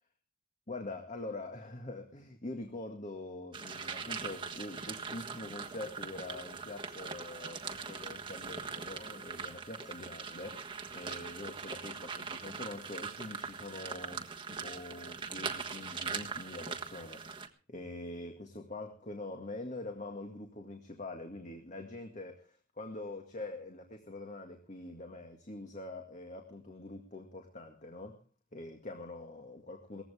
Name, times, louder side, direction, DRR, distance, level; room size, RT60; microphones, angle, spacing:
voice 1, 0.7-17.3 17.7-28.2 28.5-30.0, left 2 dB, 35° left, 4 dB, 2.0 m, -44 dB
sound 1, 3.5-17.5, right 5 dB, 25° right, 1.4 m, -41 dB
19.0 x 15.5 x 3.6 m, 0.37 s
head